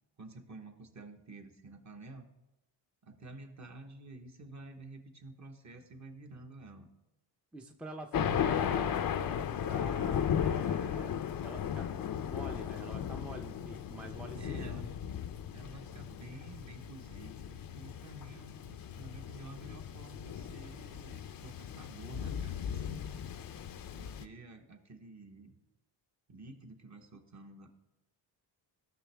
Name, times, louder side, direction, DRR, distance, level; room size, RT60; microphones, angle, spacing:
voice 1, 0.2-2.3 3.0-6.9 8.2-8.9 14.4-15.1 15.5-23.0 23.9-25.6 26.3-27.7, right 2 dB, 40° right, 4 dB, 1.3 m, -50 dB
voice 2, 7.5-11.9 12.2-14.7 23.0-23.9, right 1 dB, 5° right, 3 dB, 0.6 m, -48 dB
Thunder, 8.1-24.3, left 8 dB, 50° left, 0.6 m, -36 dB
16.0 x 6.0 x 3.4 m, 0.94 s
cardioid pair, 90°, 44 cm